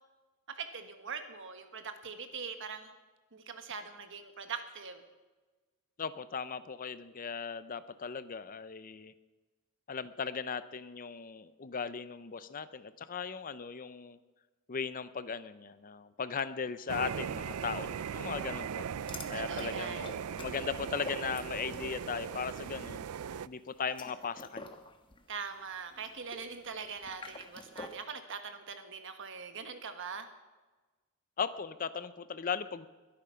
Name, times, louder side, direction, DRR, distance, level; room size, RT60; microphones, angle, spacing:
voice 1, 0.5-2.9 3.3-5.0 19.3-20.0 25.3-30.3, right 5 dB, 60° right, 8 dB, 1.5 m, -42 dB
voice 2, 6.0-9.1 9.9-14.2 14.7-18.9 19.3-23.1 23.5-24.7 31.4-32.9, left 6 dB, 40° left, 14 dB, 0.6 m, -38 dB
sound 1, 16.9-23.5, right 7 dB, 85° right, 0.4 m, -38 dB
sound 2, 19.0-21.9 22.2-22.5 23.7-28.1, left 3 dB, 25° left, 1.2 m, -48 dB
22.0 x 8.9 x 5.7 m, 1.2 s
head